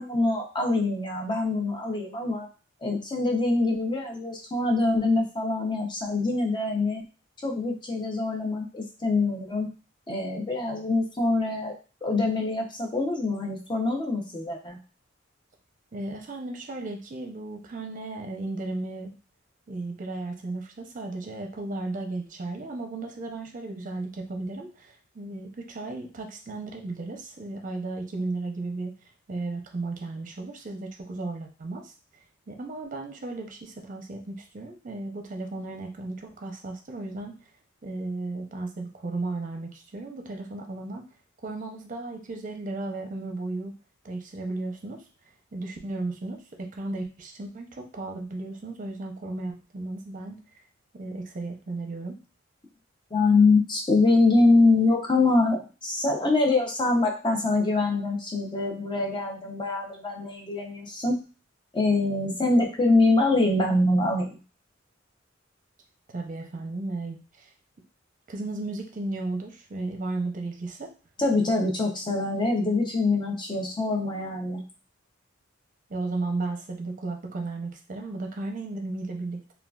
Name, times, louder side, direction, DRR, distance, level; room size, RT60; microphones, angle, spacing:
voice 1, 0.0-2.5 2.8-7.0 7.4-9.7 10.1-11.7 12.0-14.8 53.1-61.2 61.7-64.4 71.2-74.6, left 2 dB, 25° left, 1 dB, 0.6 m, -24 dB
voice 2, 15.9-19.1 19.7-28.9 29.3-31.9 32.5-37.4 37.8-41.0 41.4-43.7 44.0-45.0 45.5-50.4 50.9-52.2 66.1-67.5 68.3-70.9 75.9-79.5, right 2 dB, 40° right, 3 dB, 0.6 m, -34 dB
3.7 x 2.3 x 2.3 m, 0.34 s
head